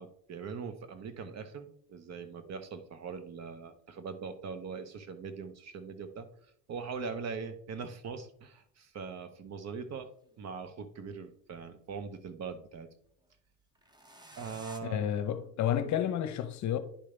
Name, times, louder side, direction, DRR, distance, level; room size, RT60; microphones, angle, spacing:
voice 1, 0.0-6.3 6.7-10.1 10.4-12.9 14.3-15.1, right 5 dB, 45° right, 1.1 m, -41 dB
sound 1, 8.6-8.7 9.9-11.0 13.7-14.8, right 1 dB, 10° right, 1.0 m, -52 dB
voice 2, 14.8-16.8, left 10 dB, 50° left, 0.9 m, -31 dB
10.5 x 5.0 x 3.3 m
supercardioid pair, 105°, 38 cm